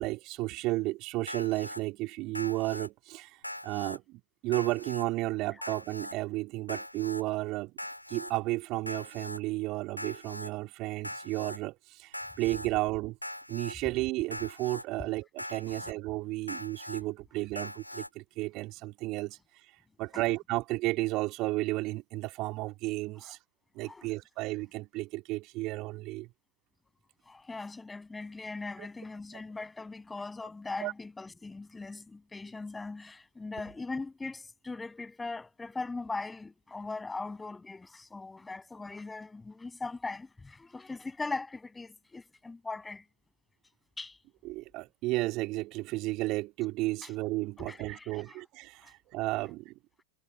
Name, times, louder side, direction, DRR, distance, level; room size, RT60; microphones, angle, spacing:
voice 1, 0.0-7.7 8.1-13.2 13.5-23.4 23.7-26.3 28.8-28.9 29.3-29.4 30.8-30.9 44.4-49.7, right 20 dB, 40° right, 3.0 m, -33 dB
Alarm, 1.3-1.8 2.3-2.9 3.4-4.0 4.5-5.1 5.6-6.1 6.7-7.2 7.8-8.3 8.9-9.4 10.0-10.5 11.0-11.6 12.1-12.7 13.2-13.7 14.3-14.8 15.4-15.9 16.5-17.0 17.6-18.1, left 1 dB, 90° left, 2.6 m, -41 dB
voice 2, 27.3-43.0 44.0-44.2 47.0-47.1 47.6-48.4 48.8-48.9, left 3 dB, 10° left, 7.1 m, -40 dB
figure-of-eight pair, 90°, 0 cm